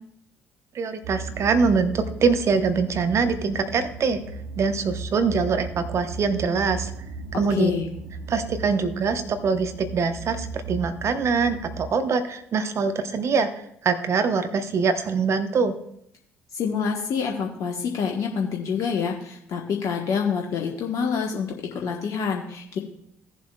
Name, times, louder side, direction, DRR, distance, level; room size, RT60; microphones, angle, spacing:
voice 1, 0.7-4.2 4.6-6.9 7.4-7.7 8.3-13.5 13.8-15.7, right 5 dB, 50° right, 9 dB, 0.9 m, -23 dB
sound 1, 1.0-11.9, right 4 dB, 75° right, 0.8 m, -36 dB
voice 2, 7.5-7.9 16.5-22.8, left 6 dB, 55° left, 1 dB, 1.2 m, -27 dB
16.5 x 7.5 x 2.3 m, 0.73 s
hypercardioid pair, 50°, 6 cm